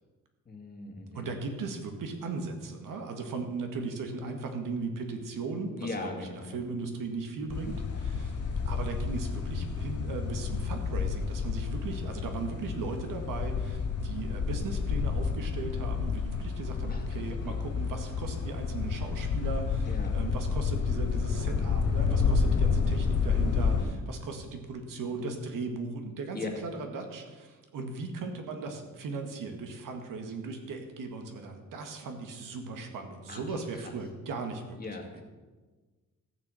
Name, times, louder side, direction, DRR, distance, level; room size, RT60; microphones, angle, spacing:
voice 1, 0.5-1.3 5.8-6.6 16.9-17.6 19.9-20.1 26.3-26.5 33.3-33.6 34.8-35.2, left 3 dB, 30° left, 2 dB, 1.9 m, -39 dB
voice 2, 1.1-8.4 8.7-35.2, right 4 dB, 85° right, 4 dB, 1.9 m, -38 dB
sound 1, 7.5-23.8, left 5 dB, 80° left, 3.8 m, -30 dB
14.5 x 6.6 x 7.8 m, 1.3 s
wide cardioid pair, 140°, 31 cm